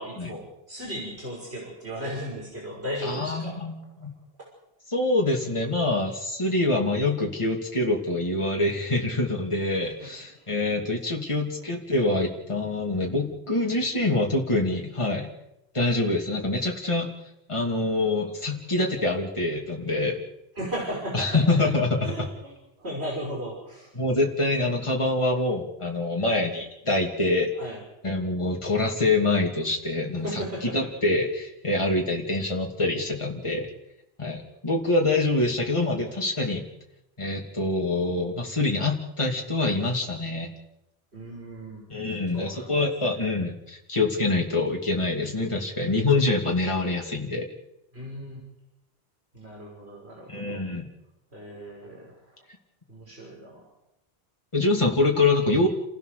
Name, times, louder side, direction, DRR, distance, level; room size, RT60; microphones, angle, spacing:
voice 1, 0.0-3.6 10.0-10.1 10.4-10.5 20.6-21.7 22.0-23.9 27.6-27.8 30.2-30.8 41.1-41.8 42.3-42.7 47.9-48.4 49.3-50.7 51.3-52.2 52.9-53.7, equal, 85° right, -2 dB, 6.3 m, -36 dB
voice 2, 3.0-3.7 4.0-4.1 4.9-15.3 15.7-17.1 17.5-20.2 21.1-22.1 23.9-27.5 28.0-30.4 30.7-33.7 34.2-36.7 37.2-40.5 41.9-47.5 50.3-50.9 54.5-55.7, left 2 dB, 30° left, -1 dB, 2.8 m, -25 dB
29.5 x 16.0 x 6.8 m, 0.86 s
omnidirectional pair, 1.1 m